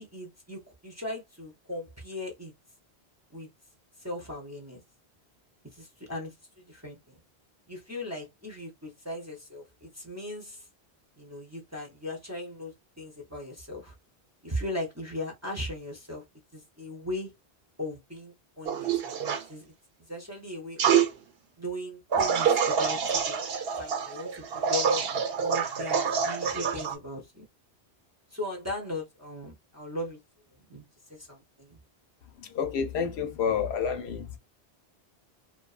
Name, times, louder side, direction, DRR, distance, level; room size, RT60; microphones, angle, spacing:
voice 1, 0.0-2.5 3.3-3.5 4.0-4.8 5.7-7.2 7.7-10.7 11.2-13.9 14.4-16.2 16.5-17.3 17.8-19.7 20.1-21.0 21.6-23.5 23.7-27.4 28.3-30.2 30.5-30.8 31.1-31.8, left 1 dB, 20° right, 0.6 m, -38 dB
sound 1, 18.7-19.4 20.8-21.1 22.1-26.9, right 7 dB, 70° right, 0.8 m, -26 dB
voice 2, 32.4-34.4, left 7 dB, 80° left, 0.9 m, -29 dB
2.6 x 2.3 x 2.4 m
omnidirectional pair, 1.1 m